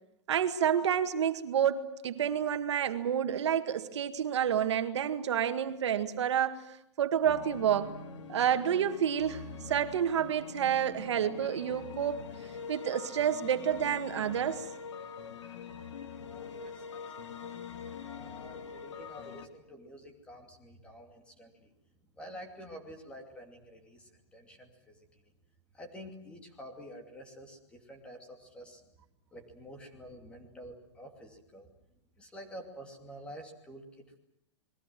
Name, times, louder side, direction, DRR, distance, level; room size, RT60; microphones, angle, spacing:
voice 1, 0.3-6.6 7.0-7.9 8.3-12.3 12.7-14.6, right 9 dB, 75° right, 8 dB, 1.9 m, -29 dB
sound 1, 7.2-19.5, left 5 dB, 90° left, 2.6 m, -44 dB
voice 2, 16.2-21.7 22.1-25.2 25.7-28.8 29.3-31.7 32.2-34.2, equal, 5° left, 4 dB, 2.7 m, -49 dB
29.5 x 21.5 x 7.6 m, 0.80 s
supercardioid pair, 175°, 15 cm